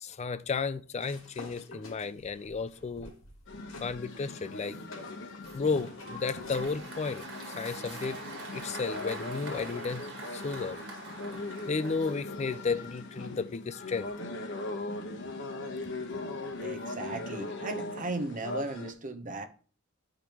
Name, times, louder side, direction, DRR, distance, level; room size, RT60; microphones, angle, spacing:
voice 1, 0.0-3.1 3.8-4.8 5.5-8.2 8.5-10.8 11.7-14.1, left 4 dB, 35° left, 0.4 m, -33 dB
sound 1, 1.0-3.9 4.3-6.7, left 2 dB, 85° left, 2.2 m, -48 dB
sound 2, 3.5-18.9, left 2 dB, 60° left, 1.2 m, -40 dB
Applause, 5.4-12.5, right 3 dB, 55° right, 2.2 m, -45 dB
voice 2, 16.6-19.5, right 2 dB, 40° right, 0.9 m, -36 dB
11.0 x 5.1 x 3.0 m
head